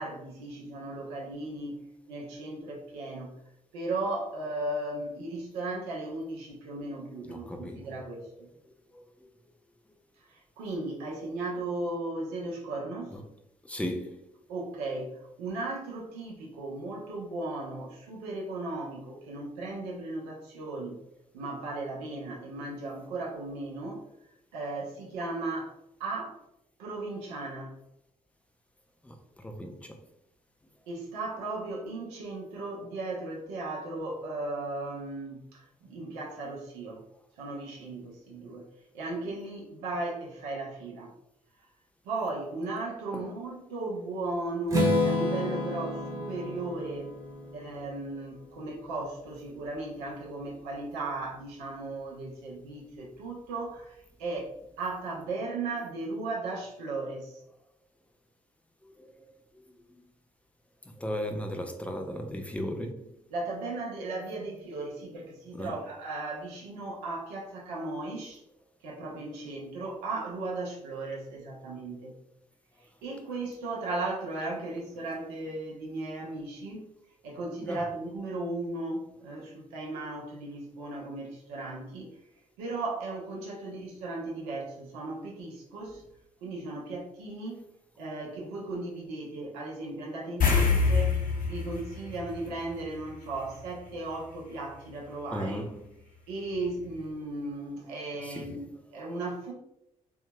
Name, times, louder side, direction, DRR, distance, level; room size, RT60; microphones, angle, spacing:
voice 1, 0.0-1.8 2.1-3.3 3.7-8.5 10.3-13.1 14.5-15.1 15.4-21.0 21.3-24.0 24.5-25.7 26.0-26.4 26.8-27.7 30.9-37.0 37.4-38.6 38.9-41.1 42.0-47.1 47.5-54.5 54.8-57.4 63.3-68.4 68.8-72.1 73.0-76.9 77.2-82.1 82.6-86.0 86.4-87.6 88.0-95.6 96.3-98.7 98.9-99.5, right 2 dB, 70° right, 0.8 m, -36 dB
voice 2, 7.3-8.0 8.9-9.0 13.1-13.2 13.6-14.2 29.0-30.0 43.1-43.3 59.0-59.1 59.5-60.0 60.9-63.1 65.5-65.8 76.2-76.3 77.6-77.8 95.3-95.9 98.2-98.6, equal, 5° left, 0.7 m, -37 dB
Strum, 44.7-48.6, left 2 dB, 20° right, 1.3 m, -30 dB
sound 1, 90.4-93.2 93.5-93.7 96.6-96.7 97.0-97.1, left 5 dB, 55° left, 1.0 m, -26 dB
4.5 x 2.8 x 2.2 m
figure-of-eight pair, 40°, 18 cm